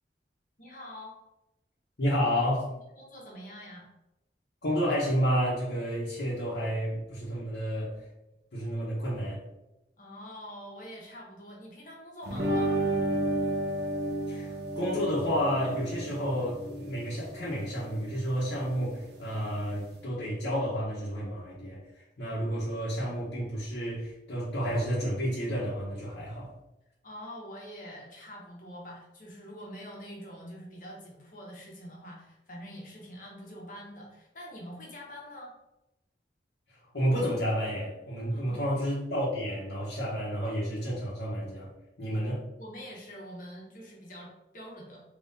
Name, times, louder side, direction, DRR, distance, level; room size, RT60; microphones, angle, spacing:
voice 1, 0.6-1.2 2.7-3.9 10.0-12.7 27.0-35.5 38.3-38.8 42.0-45.0, equal, 45° left, -3 dB, 1.1 m, -45 dB
voice 2, 2.0-2.7 4.6-7.9 8.5-9.4 14.3-26.5 36.7-41.7 42.0-42.4, equal, 80° left, -10 dB, 1.1 m, -30 dB
sound 1, 12.3-20.0, right 1 dB, 65° right, 0.7 m, -33 dB
3.7 x 3.1 x 2.7 m, 0.91 s
head